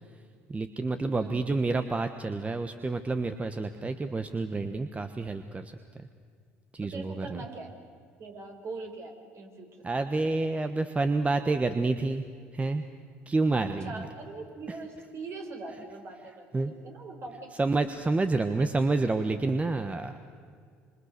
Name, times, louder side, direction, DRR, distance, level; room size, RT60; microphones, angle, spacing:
voice 1, 0.5-5.7 6.7-7.4 9.8-12.2 12.5-12.8 13.3-14.1 16.5-16.7 17.6-20.3, right 3 dB, 20° right, 9 dB, 1.3 m, -28 dB
voice 2, 1.1-1.4 6.8-7.7 8.2-9.9 13.6-17.5, right 3 dB, 50° right, 3 dB, 5.2 m, -42 dB
27.0 x 26.0 x 6.8 m, 2.2 s
hypercardioid pair, 65°, 6 cm